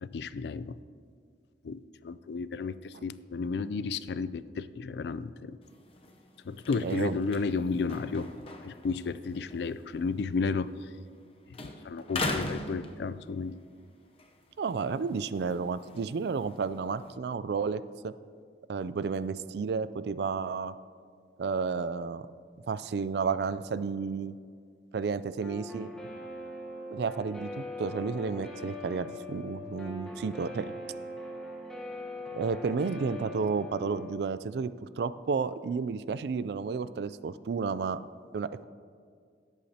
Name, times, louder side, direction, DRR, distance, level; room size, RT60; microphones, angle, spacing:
voice 1, 0.0-0.8 1.6-5.6 6.5-8.3 8.6-10.9 11.6-13.6, left 4 dB, 70° left, 15 dB, 0.4 m, -33 dB
sound 1, 5.6-11.3 11.5-13.6 14.0-17.1, left 2 dB, 35° left, 0.7 m, -41 dB
voice 2, 6.8-7.2 14.6-18.1 18.7-20.7 21.4-22.3 22.7-24.3 24.9-25.9 26.9-30.7 32.3-34.7 35.0-38.0 38.3-38.6, right 5 dB, 65° right, 15 dB, 0.3 m, -32 dB
Guitar, 25.4-34.1, left 2 dB, 5° left, 1.2 m, -41 dB
18.0 x 8.2 x 2.8 m, 2.1 s
head